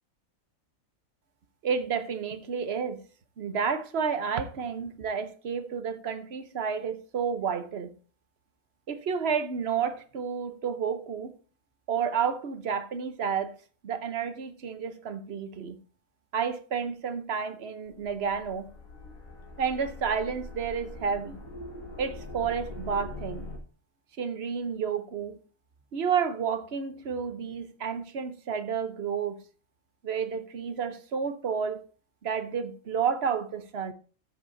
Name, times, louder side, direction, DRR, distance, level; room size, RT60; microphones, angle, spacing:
voice 1, 1.6-3.0 3.4-7.9 8.9-11.3 11.9-13.5 13.8-15.8 16.3-18.7 19.6-21.4 22.0-23.5 24.2-25.4 25.9-29.4 30.0-31.8 32.2-33.9, right 6 dB, 55° right, 1.1 m, -30 dB
sound 1, 17.9-23.6, left 2 dB, 90° left, 2.1 m, -42 dB
13.0 x 7.6 x 2.6 m
omnidirectional pair, 1.4 m